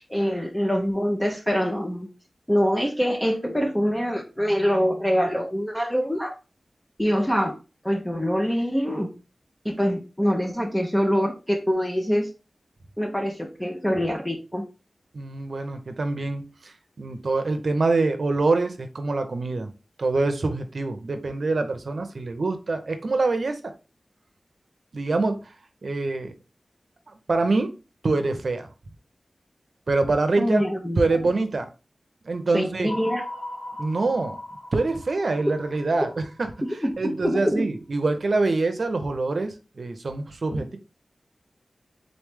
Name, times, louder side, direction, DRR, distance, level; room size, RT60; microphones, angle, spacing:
voice 1, 0.0-2.1 2.5-6.3 7.0-7.6 7.8-9.1 9.6-12.3 13.0-14.7 30.4-31.2 32.5-33.2 36.6-37.7 40.5-40.6, equal, 10° left, 0.6 m, -24 dB
voice 2, 15.1-19.7 20.0-23.7 24.9-25.4 25.8-26.3 27.3-27.7 28.0-28.7 29.9-30.7 31.0-31.7 32.3-33.0 33.8-34.4 34.7-36.5 37.0-40.8, right 3 dB, 65° right, 0.7 m, -25 dB
sound 1, 32.9-37.1, left 1 dB, 40° left, 1.4 m, -39 dB
3.9 x 3.1 x 3.5 m
wide cardioid pair, 85°, 0 cm